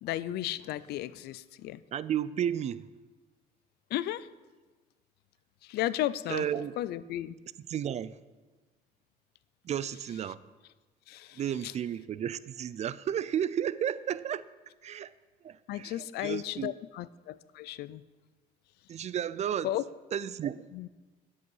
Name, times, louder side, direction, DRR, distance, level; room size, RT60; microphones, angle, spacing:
voice 1, 0.0-1.8 3.9-4.3 5.6-6.5 6.8-7.3 11.1-11.7 15.7-18.0 19.6-19.8 20.7-20.9, left 14 dB, 75° left, 0.5 m, -34 dB
voice 2, 1.9-2.9 6.3-6.7 7.6-8.2 9.6-10.4 11.3-14.5 14.8-15.1 15.4-16.8 18.9-19.8 20.1-20.7, right 9 dB, 40° right, 0.4 m, -33 dB
10.5 x 8.0 x 5.5 m
cardioid pair, 110°, 17 cm